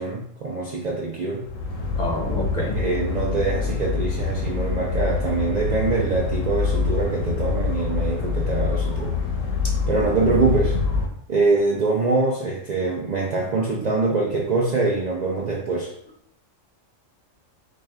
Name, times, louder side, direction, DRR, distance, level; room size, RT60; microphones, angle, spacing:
voice 1, 0.0-1.4 2.7-9.2 9.9-10.8 11.3-15.9, right 3 dB, 55° right, -2 dB, 0.4 m, -24 dB
sound 1, 1.4-11.1, left 4 dB, 80° left, 1.1 m, -25 dB
voice 2, 2.0-2.8, left 2 dB, 45° left, -2 dB, 0.7 m, -27 dB
4.2 x 2.3 x 3.3 m, 0.68 s
omnidirectional pair, 1.3 m